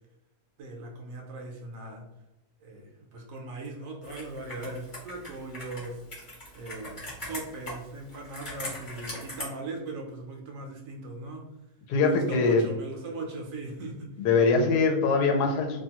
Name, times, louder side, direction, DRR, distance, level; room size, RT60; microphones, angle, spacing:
voice 1, 0.6-2.1 2.6-6.0 6.5-11.5 12.0-14.2, right 2 dB, 70° right, 1 dB, 0.9 m, -39 dB
Computer keyboard, 4.0-9.4, left 1 dB, 35° left, 0.9 m, -41 dB
voice 2, 11.9-12.7 14.2-15.8, left 4 dB, 85° left, 2 dB, 1.1 m, -23 dB
2.8 x 2.3 x 2.8 m, 0.94 s
omnidirectional pair, 1.7 m